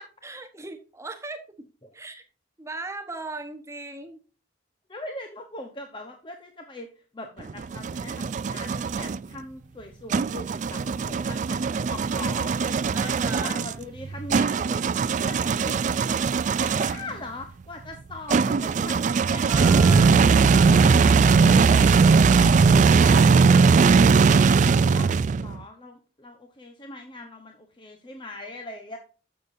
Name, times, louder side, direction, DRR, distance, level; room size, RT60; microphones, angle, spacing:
voice 1, 0.2-1.7 1.9-2.2 2.6-4.2 12.9-13.6 19.4-20.2, right 3 dB, 15° right, 6 dB, 1.0 m, -37 dB
voice 2, 4.9-6.9 7.1-19.0 19.2-29.0, left 2 dB, 25° left, 3 dB, 0.9 m, -41 dB
sound 1, 7.4-9.2 10.1-17.1 18.3-25.6, right 5 dB, 40° right, 0.3 m, -20 dB
12.0 x 6.8 x 2.6 m, 0.36 s
head